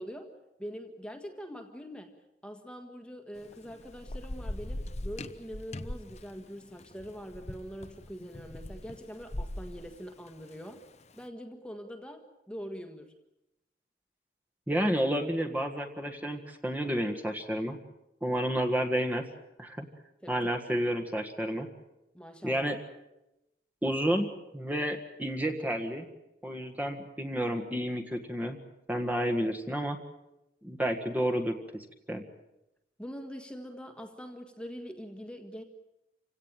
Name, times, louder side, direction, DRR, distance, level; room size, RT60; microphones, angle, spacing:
voice 1, 0.0-2.1 2.4-10.8 11.1-13.1 20.2-20.5 22.1-22.7 33.0-35.6, equal, 5° left, 6 dB, 1.6 m, -43 dB
Thunder / Rain, 3.4-11.0, left 1 dB, 40° left, 1.0 m, -41 dB
voice 2, 14.7-17.8 18.2-19.2 19.6-19.9 20.3-21.7 22.4-22.8 23.8-24.3 24.5-26.1 26.4-28.6 28.9-30.0 30.6-32.2, equal, 10° right, 3 dB, 1.6 m, -30 dB
27.5 x 17.0 x 9.0 m, 0.91 s
head